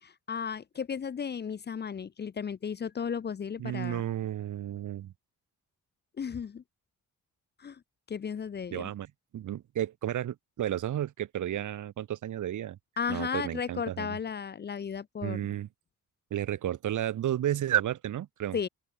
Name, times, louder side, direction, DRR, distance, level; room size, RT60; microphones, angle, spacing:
voice 1, 0.0-4.0 6.2-6.6 7.6-7.8 8.1-8.9 13.0-15.4 18.5-18.7, left 6 dB, 35° left, 0.6 m, -34 dB
voice 2, 3.6-5.1 8.7-9.1 9.3-12.8 13.1-14.2 15.2-15.7 16.3-18.6, right 11 dB, 70° right, 1.2 m, -32 dB
open air
cardioid pair, 120°, 32 cm